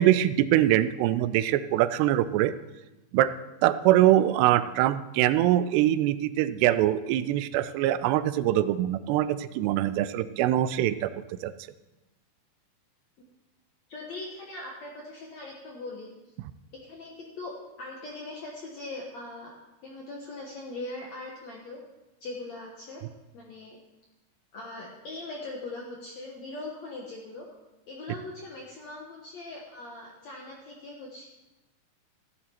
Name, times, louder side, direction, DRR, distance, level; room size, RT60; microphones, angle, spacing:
voice 1, 0.0-2.5 3.1-3.3 3.6-11.1 11.4-11.5, right 13 dB, 85° right, 14 dB, 2.6 m, -23 dB
voice 2, 13.9-16.1 16.7-19.6 19.8-21.8 22.2-23.0 23.3-23.8 24.5-27.5 27.9-31.3, left 2 dB, 65° left, -1 dB, 1.7 m, -40 dB
14.5 x 9.1 x 4.4 m, 1.0 s
omnidirectional pair, 4.8 m